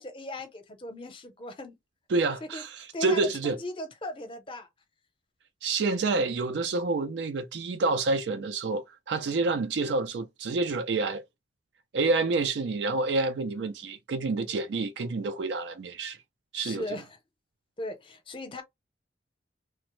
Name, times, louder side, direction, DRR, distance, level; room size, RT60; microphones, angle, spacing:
voice 1, 0.0-1.8 2.4-2.6 2.9-4.7 12.0-12.1 14.4-14.7 16.6-17.2 17.8-18.6, left 1 dB, 30° left, 0.6 m, -38 dB
voice 2, 2.1-3.6 5.6-11.2 11.9-16.2 16.5-17.0, right 3 dB, 80° right, 0.4 m, -28 dB
3.0 x 2.0 x 3.0 m
head